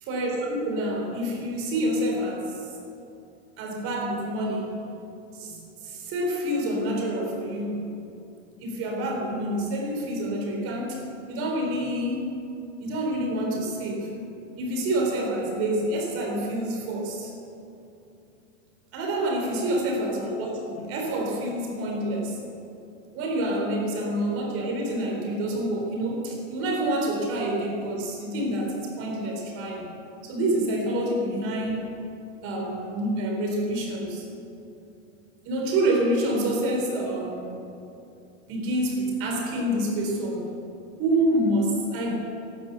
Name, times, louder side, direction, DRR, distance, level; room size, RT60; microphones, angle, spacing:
voice 1, 0.1-2.7 3.6-4.7 5.3-7.8 8.6-11.0 11.3-12.3 12.8-17.3 18.9-22.4 23.1-29.9 30.2-31.8 32.4-34.2 35.4-37.5 38.5-40.5 41.0-42.2, right 1 dB, 35° right, 0 dB, 4.3 m, -27 dB
15.5 x 11.5 x 7.0 m, 2.7 s
supercardioid pair, 155°, 38 cm